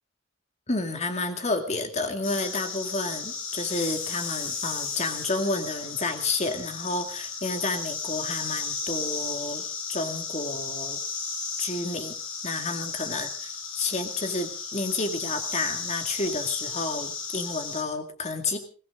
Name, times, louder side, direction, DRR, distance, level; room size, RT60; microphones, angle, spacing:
voice 1, 0.7-9.6 9.9-11.0 11.6-12.1 12.4-18.6, left 3 dB, 35° left, 6 dB, 2.3 m, -30 dB
sound 1, 2.2-17.8, left 5 dB, 90° left, 4.8 m, -34 dB
22.5 x 16.0 x 3.9 m, 0.39 s
head